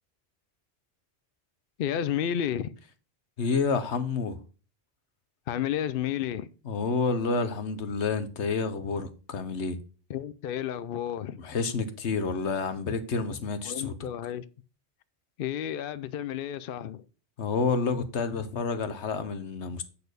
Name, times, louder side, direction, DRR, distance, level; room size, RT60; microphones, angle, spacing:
voice 1, 1.8-2.7 5.5-6.5 10.1-11.4 13.6-14.4 15.4-17.1, left 10 dB, 60° left, 0.7 m, -31 dB
voice 2, 3.4-4.4 6.7-9.8 11.4-13.9 17.4-19.8, left 4 dB, 80° left, 1.3 m, -29 dB
8.5 x 4.3 x 6.6 m
omnidirectional pair, 1.1 m